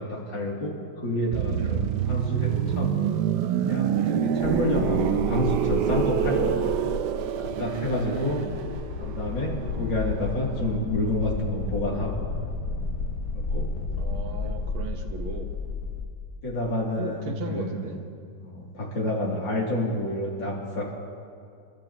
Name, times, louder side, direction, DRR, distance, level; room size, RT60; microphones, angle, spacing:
voice 1, 0.0-2.9 3.6-6.6 7.4-8.4 9.0-12.2 13.3-13.7 16.4-17.8 18.4-20.9, left 1 dB, 65° left, -4 dB, 3.5 m, -29 dB
sound 1, 1.3-11.0 11.2-11.5, right 9 dB, 70° right, 1.1 m, -27 dB
sound 2, 4.4-16.0, left 3 dB, 50° left, 1.3 m, -32 dB
voice 2, 7.5-8.6 14.0-15.5 17.0-18.0, right 5 dB, 90° right, 3 dB, 2.1 m, -36 dB
29.0 x 12.5 x 3.0 m, 2.4 s
omnidirectional pair, 2.2 m